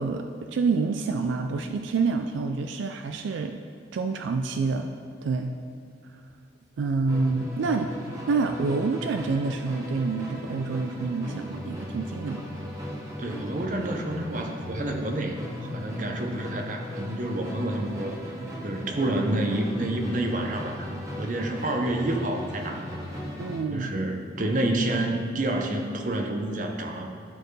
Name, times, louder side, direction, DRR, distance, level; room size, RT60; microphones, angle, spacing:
voice 1, 0.0-3.6 3.9-4.9 5.2-5.6 6.8-7.9 8.3-12.4 23.4-23.9, right 4 dB, 75° right, 6 dB, 0.3 m, -27 dB
Musical instrument, 7.1-23.7, equal, 15° right, 1.0 m, -37 dB
voice 2, 13.2-18.2 18.6-23.1 23.7-27.1, right 1 dB, 40° right, 3 dB, 0.6 m, -29 dB
12.5 x 4.4 x 3.2 m, 2.4 s
head